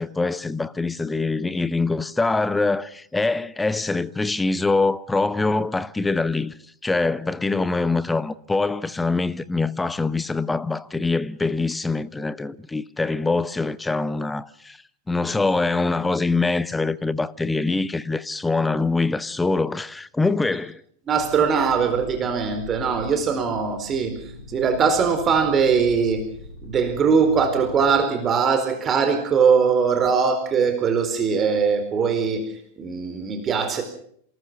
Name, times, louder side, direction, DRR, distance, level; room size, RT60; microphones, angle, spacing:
voice 1, 0.0-6.5 6.8-14.8 15.1-20.8, left 3 dB, 10° left, 1.0 m, -24 dB
sound 1, 21.1-27.9, left 2 dB, 60° left, 4.9 m, -41 dB
voice 2, 21.1-26.2 26.6-33.8, right 6 dB, 25° right, 4.3 m, -21 dB
28.0 x 19.5 x 6.1 m
figure-of-eight pair, 90°, 0 cm